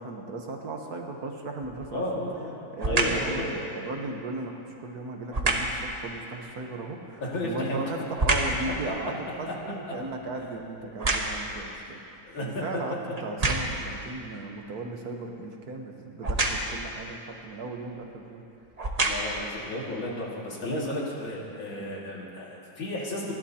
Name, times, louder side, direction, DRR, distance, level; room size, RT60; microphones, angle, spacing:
voice 1, 0.0-2.0 2.7-18.4 21.7-21.9, right 3 dB, 55° right, 2 dB, 1.5 m, -36 dB
sound 1, 1.6-2.0 2.8-3.3 5.3-5.8 7.2-8.7 9.1-11.6 12.3-12.4 13.2-13.9 16.2-16.8 17.8-18.0 18.6-19.5 20.1-20.2, right 2 dB, 30° right, 0.8 m, -28 dB
voice 2, 1.9-3.5 7.2-7.8 12.2-12.6 19.0-23.3, left 1 dB, 85° left, -4 dB, 3.0 m, -33 dB
29.0 x 12.0 x 2.8 m, 2.7 s
omnidirectional pair, 2.1 m